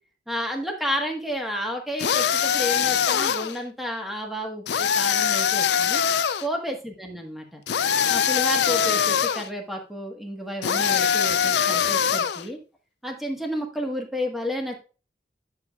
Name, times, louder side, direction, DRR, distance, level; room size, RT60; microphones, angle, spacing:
voice 1, 0.3-6.0 6.4-7.6 8.1-12.6 13.0-14.8, equal, ahead, 2 dB, 1.3 m, -31 dB
sound 1, 2.0-3.6 4.7-6.5 7.7-9.5 10.6-12.4, left 8 dB, 75° left, 0.4 m, -22 dB
10.5 x 6.8 x 2.3 m, 0.35 s
head